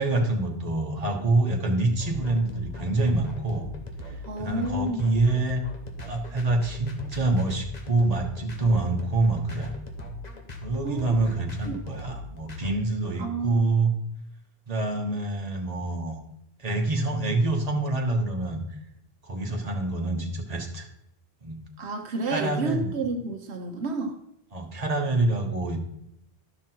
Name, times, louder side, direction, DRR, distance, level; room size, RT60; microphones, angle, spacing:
voice 1, 0.0-3.7 4.0-5.6 6.0-9.7 10.6-13.9 14.7-16.2 16.6-18.6 19.2-20.9 21.4-21.6 22.2-22.9 24.5-25.8, right 2 dB, 40° right, 1 dB, 1.5 m, -26 dB
sound 1, 2.0-12.7, left 3 dB, 40° left, 1.3 m, -39 dB
voice 2, 4.2-5.1 10.8-11.8 13.2-13.7 21.8-24.2, right 2 dB, 85° right, 3 dB, 1.3 m, -31 dB
12.0 x 6.0 x 4.5 m, 0.79 s
omnidirectional pair, 1.1 m